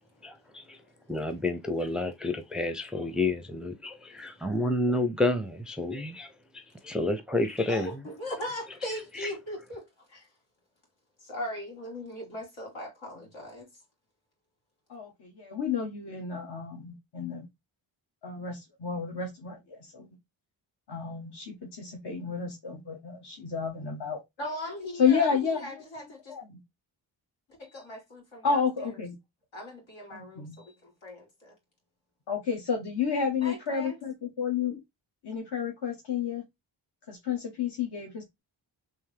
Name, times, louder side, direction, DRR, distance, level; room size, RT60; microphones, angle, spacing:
voice 1, 0.2-0.8 1.1-7.9 9.1-9.3, left 2 dB, ahead, 0.6 m, -30 dB
voice 2, 7.7-10.3 11.2-13.7 24.4-26.3 27.6-28.6 29.5-31.5 33.4-33.9, left 1 dB, 75° left, 2.3 m, -39 dB
voice 3, 14.9-17.5 18.2-20.1 20.9-24.2 25.0-25.6 26.3-26.6 28.4-29.2 30.1-30.6 32.3-34.8 35.2-36.4 37.1-38.4, left 6 dB, 60° left, 1.2 m, -31 dB
3.5 x 2.8 x 3.2 m
cardioid pair, 55°, 46 cm